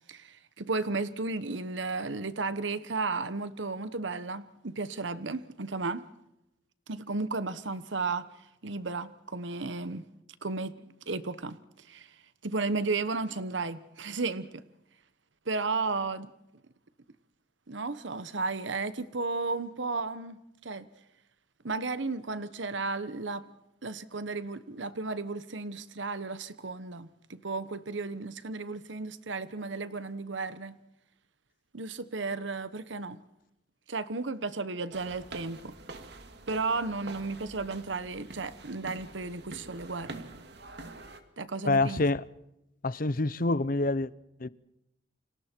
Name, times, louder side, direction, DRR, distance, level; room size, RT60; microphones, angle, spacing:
voice 1, 0.1-6.1 6.9-8.3 8.6-10.0 10.4-10.7 11.1-12.1 12.4-14.6 15.5-16.3 17.7-20.4 20.6-20.9 21.6-23.5 23.8-30.8 31.7-33.2 33.9-35.7 36.5-40.2 41.4-42.0, right 3 dB, 75° right, 1.1 m, -34 dB
sound 1, 34.9-41.2, right 2 dB, 60° right, 2.4 m, -46 dB
voice 2, 41.6-42.2 42.8-44.1 44.4-44.5, left 2 dB, 50° left, 0.8 m, -26 dB
30.0 x 26.5 x 4.6 m
head